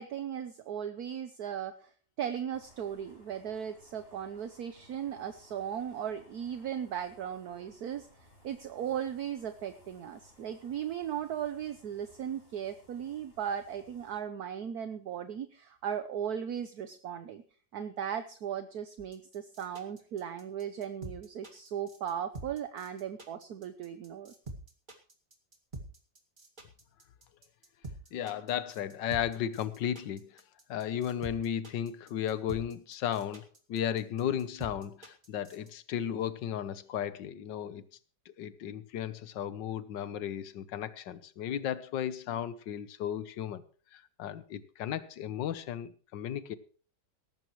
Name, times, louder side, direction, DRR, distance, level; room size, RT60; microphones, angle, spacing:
voice 1, 0.0-1.9 2.2-8.1 8.4-17.4 17.7-24.3, right 9 dB, 65° right, 1.3 m, -37 dB
sound 1, 2.5-14.2, left 1 dB, 30° left, 4.7 m, -61 dB
sound 2, 19.0-35.7, right 2 dB, 25° right, 2.1 m, -46 dB
voice 2, 28.1-30.4 30.7-37.8 38.4-43.6 43.9-46.6, left 9 dB, 80° left, 1.6 m, -35 dB
18.0 x 14.5 x 3.1 m
omnidirectional pair, 1.9 m